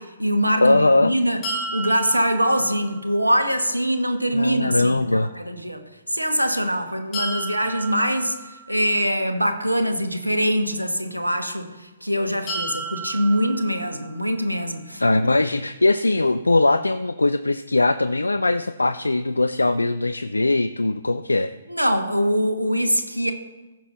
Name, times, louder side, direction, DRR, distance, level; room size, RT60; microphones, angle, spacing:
voice 1, 0.0-1.4 1.7-5.8 6.1-15.0 21.7-23.3, equal, 85° right, 7 dB, 1.2 m, -23 dB
voice 2, 0.6-1.1 4.3-5.3 15.0-21.5, left 2 dB, 75° left, 11 dB, 0.4 m, -20 dB
sound 1, 1.4-3.4 7.1-9.2 12.5-14.5, right 2 dB, 25° left, 3.6 m, -33 dB
15.0 x 6.1 x 4.0 m, 1.1 s
figure-of-eight pair, 130°, 0 cm